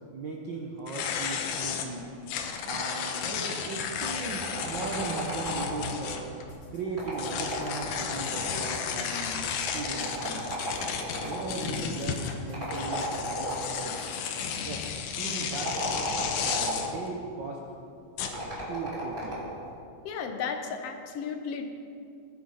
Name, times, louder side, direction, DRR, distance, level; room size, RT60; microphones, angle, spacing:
voice 1, 0.1-2.1 2.6-6.3 6.7-10.5 11.1-14.0 14.6-14.9 15.1-15.8 16.3-17.7 18.3-19.5, right 3 dB, 70° right, -1 dB, 1.0 m, -38 dB
sound 1, 0.9-6.5 7.2-16.9 18.2-18.6, left 7 dB, 85° left, 2.5 m, -33 dB
sound 2, 4.4-6.0 6.9-8.7 9.7-11.5 12.5-13.9 15.4-17.0 18.3-19.6, equal, 25° right, 4.4 m, -35 dB
sound 3, 6.5-14.5, left 2 dB, 45° left, 1.8 m, -50 dB
voice 2, 20.0-21.7, left 6 dB, 65° left, 5 dB, 1.7 m, -34 dB
20.5 x 7.3 x 5.6 m, 2.4 s
omnidirectional pair, 3.6 m